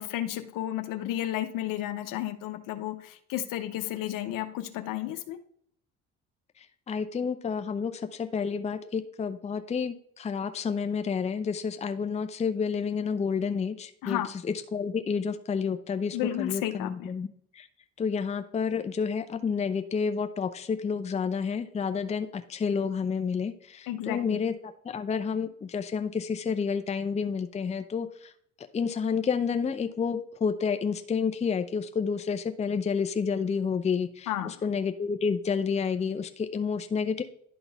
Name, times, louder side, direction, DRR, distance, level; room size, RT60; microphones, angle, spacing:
voice 1, 0.0-5.4 14.0-14.3 16.1-17.1 23.9-24.4 34.3-34.7, left 13 dB, 65° left, 9 dB, 0.8 m, -32 dB
voice 2, 6.9-14.2 14.7-17.3 17.5-17.7 18.0-24.5 24.9-28.1 28.7-37.2, left 6 dB, 20° left, 8 dB, 0.5 m, -29 dB
11.0 x 3.9 x 3.5 m, 0.67 s
hypercardioid pair, 70°, 36 cm